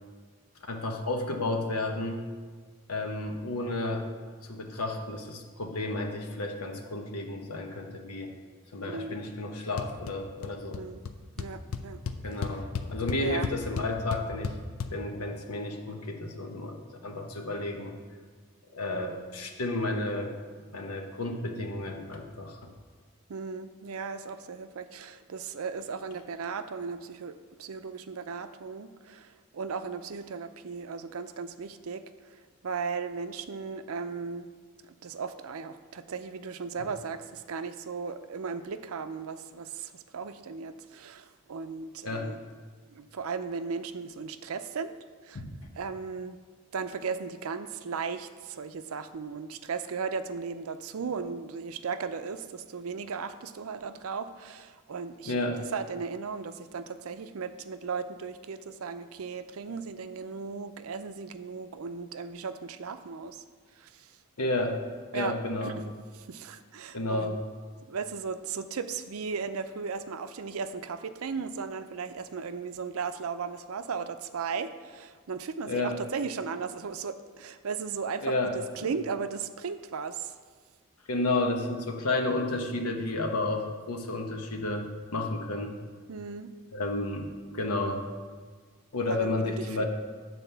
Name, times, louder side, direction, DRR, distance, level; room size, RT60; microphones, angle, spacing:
voice 1, 0.7-2.2 2.9-4.1 4.4-8.3 8.7-10.8 12.2-12.6 12.9-14.6 14.9-16.8 17.0-18.0 18.7-20.3 20.7-22.6 42.0-42.3 55.3-55.6 64.4-64.8 65.1-65.7 66.9-67.4 75.6-76.0 78.2-78.9 81.1-84.9 85.1-85.7 86.7-87.3 87.5-88.0 88.9-89.9, left 2 dB, 90° left, 3 dB, 1.0 m, -31 dB
voice 2, 8.9-9.2 10.8-11.0 11.4-12.0 13.2-13.5 23.3-34.5 35.0-42.4 42.9-45.0 45.2-45.4 45.8-46.4 46.7-55.3 55.7-63.4 63.8-64.1 65.1-65.3 65.6-67.4 67.9-80.3 86.1-86.5 89.1-89.9, right 5 dB, 75° right, 10 dB, 0.5 m, -36 dB
sound 1, 9.8-10.1 10.4-10.8 11.1-11.2 11.4-14.9, left 5 dB, 70° left, 0.5 m, -34 dB
9.2 x 4.2 x 6.8 m, 1.6 s
head